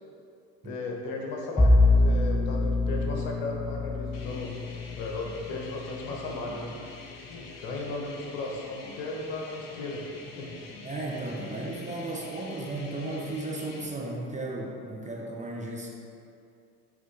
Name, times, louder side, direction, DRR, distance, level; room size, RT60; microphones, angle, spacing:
voice 1, 0.6-4.5 5.0-6.8 7.3-10.0 10.4-10.6, left 2 dB, 65° left, 0 dB, 1.2 m, -36 dB
Bowed string instrument, 1.6-6.7, left 2 dB, 10° left, 0.5 m, -25 dB
sound 1, 4.1-13.9, left 3 dB, 85° left, 0.8 m, -45 dB
voice 2, 10.8-15.9, right 2 dB, 15° right, -2 dB, 0.9 m, -35 dB
9.2 x 3.3 x 3.4 m, 2.5 s
hypercardioid pair, 70°, 47 cm